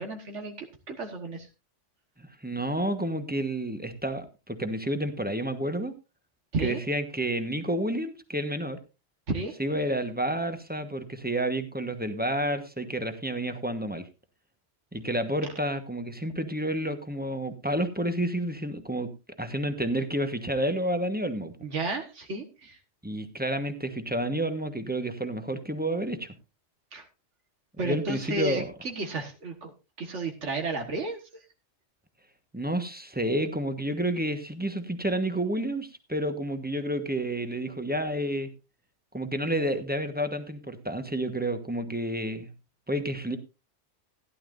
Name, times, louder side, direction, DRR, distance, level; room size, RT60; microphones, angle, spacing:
voice 1, 0.0-1.5 6.5-6.8 9.3-9.5 21.6-22.8 26.9-27.1 27.8-29.7 30.0-31.2, right 3 dB, 85° right, 4 dB, 1.9 m, -32 dB
voice 2, 2.2-5.9 6.6-8.8 9.6-14.1 14.9-19.1 19.4-21.5 23.0-26.3 27.8-28.7 32.5-38.5 39.1-42.5 42.9-43.4, right 1 dB, 10° right, 8 dB, 1.2 m, -30 dB
16.0 x 11.0 x 2.6 m, 0.29 s
omnidirectional pair, 1.2 m